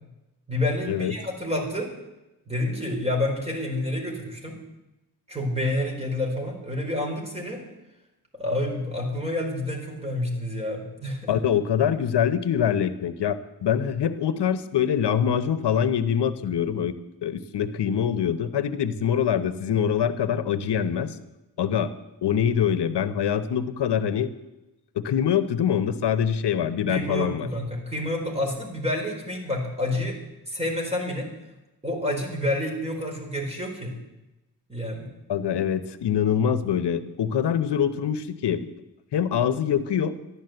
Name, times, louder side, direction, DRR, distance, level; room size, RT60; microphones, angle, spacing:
voice 1, 0.5-1.9 2.5-4.6 5.3-7.6 8.3-11.4 26.9-30.2 30.5-31.3 31.8-33.9 34.7-35.1, left 1 dB, 15° right, 1 dB, 4.2 m, -28 dB
voice 2, 11.3-17.0 17.2-21.2 21.6-21.9 22.2-24.3 24.9-27.5 35.3-38.7 39.1-40.2, left 8 dB, 90° left, 11 dB, 1.0 m, -24 dB
14.0 x 11.5 x 7.9 m, 0.98 s
wide cardioid pair, 115°, 40 cm